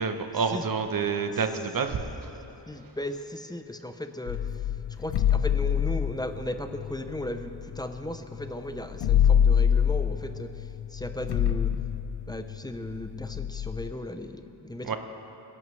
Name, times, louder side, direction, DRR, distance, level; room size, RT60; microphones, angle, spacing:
voice 1, 0.0-2.0 14.8-15.0, right 5 dB, 50° right, 7 dB, 0.9 m, -28 dB
voice 2, 2.7-4.5 5.0-11.7 12.3-14.9, left 1 dB, 10° left, 7 dB, 0.5 m, -36 dB
sound 1, 4.3-8.1 8.4-8.5 8.7-13.9, left 9 dB, 70° left, 0.5 m, -26 dB
22.5 x 11.0 x 3.2 m, 3.0 s
wide cardioid pair, 140°, 42 cm